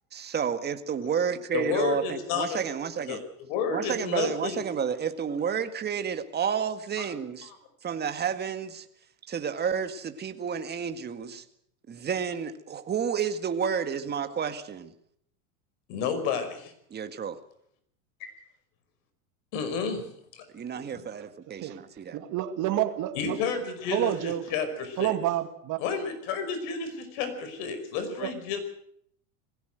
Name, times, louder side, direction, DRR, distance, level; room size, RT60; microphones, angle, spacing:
voice 1, 0.1-3.2 3.7-7.5 7.8-8.9 9.3-11.5 11.9-14.9 16.9-17.4 20.5-22.2, right 7 dB, 25° right, 9 dB, 1.9 m, -31 dB
voice 2, 1.5-2.6 3.1-3.2 3.5-4.6 15.9-16.7 18.2-18.3 19.5-20.0 20.3-20.5 20.7-21.0 23.1-25.1 25.8-28.6, left 6 dB, 60° left, 8 dB, 5.5 m, -31 dB
voice 3, 22.1-23.4 23.9-24.5 25.0-25.8 28.2-28.3, right 13 dB, 45° right, 9 dB, 2.3 m, -29 dB
21.0 x 16.5 x 8.0 m, 0.69 s
supercardioid pair, 120°, 42 cm